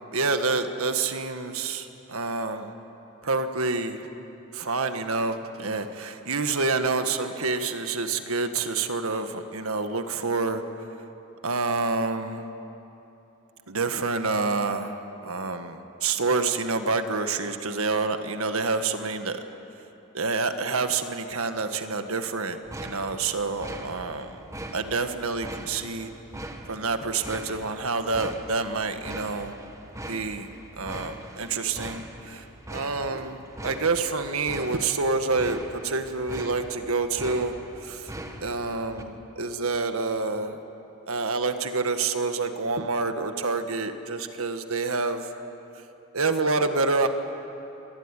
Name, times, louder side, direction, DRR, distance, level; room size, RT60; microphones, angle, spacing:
voice 1, 0.0-2.7 3.2-4.0 4.5-10.6 11.4-12.4 13.7-19.4 20.1-24.5 24.7-26.1 26.7-29.6 30.1-30.5 30.8-37.6 37.8-38.1 38.4-40.6 41.1-45.3 45.8-45.9 46.1-47.1, right 3 dB, 75° right, 8 dB, 1.6 m, -28 dB
sound 1, 22.6-39.0, right 1 dB, 15° right, 1.6 m, -41 dB
26.0 x 19.0 x 9.9 m, 3.0 s
head